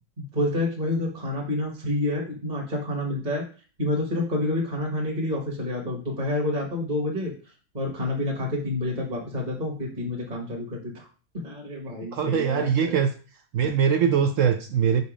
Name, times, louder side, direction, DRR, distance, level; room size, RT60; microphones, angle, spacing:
voice 1, 0.2-3.4 3.8-11.1 11.4-13.0, left 1 dB, 30° right, 0 dB, 1.2 m, -28 dB
voice 2, 12.1-13.1 13.5-15.0, right 7 dB, 75° right, 8 dB, 0.7 m, -22 dB
5.3 x 4.1 x 4.9 m, 0.38 s
omnidirectional pair, 1.8 m